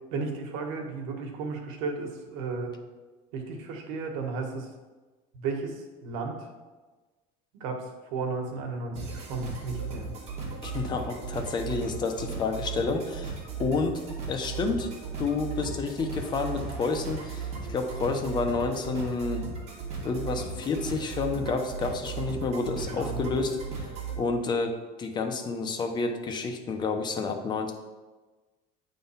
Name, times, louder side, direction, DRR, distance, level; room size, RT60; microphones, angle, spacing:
voice 1, 0.1-2.7 3.3-4.7 5.3-6.5 7.5-10.1 22.9-23.4, right 4 dB, 80° right, 3 dB, 1.4 m, -34 dB
sound 1, 9.0-24.2, right 5 dB, 35° right, 2.0 m, -36 dB
voice 2, 10.6-14.9 15.2-19.5 20.0-27.7, left 4 dB, 25° left, 4 dB, 0.8 m, -30 dB
8.4 x 3.8 x 5.6 m, 1.3 s
cardioid pair, 150°, 18 cm